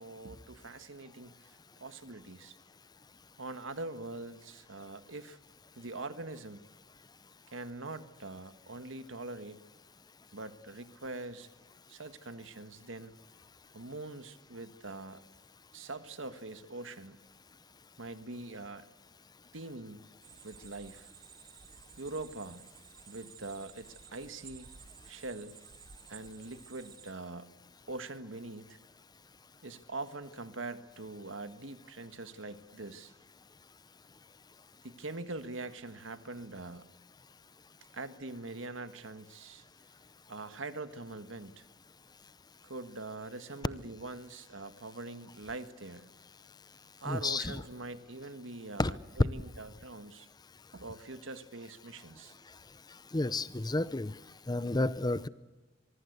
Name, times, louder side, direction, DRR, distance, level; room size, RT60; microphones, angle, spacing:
voice 1, 0.0-1.4 1.8-2.6 3.4-5.4 5.8-6.6 7.5-9.7 10.3-11.5 11.9-13.1 13.7-15.2 15.7-17.2 18.0-18.8 19.5-20.1 20.4-21.1 22.0-22.7 23.1-24.7 25.0-25.6 26.1-27.5 27.9-28.8 29.6-33.1 34.8-36.8 37.9-39.6 40.3-41.7 42.6-46.1 47.0-50.3 50.7-52.4, right 2 dB, 85° right, 11 dB, 1.6 m, -43 dB
sound 1, 20.2-27.1, right 8 dB, 50° right, 1.3 m, -54 dB
voice 2, 47.1-47.6 48.8-48.9 53.1-54.1 54.5-55.3, left 2 dB, 20° left, 17 dB, 0.7 m, -31 dB
24.5 x 23.0 x 8.1 m, 1.2 s
head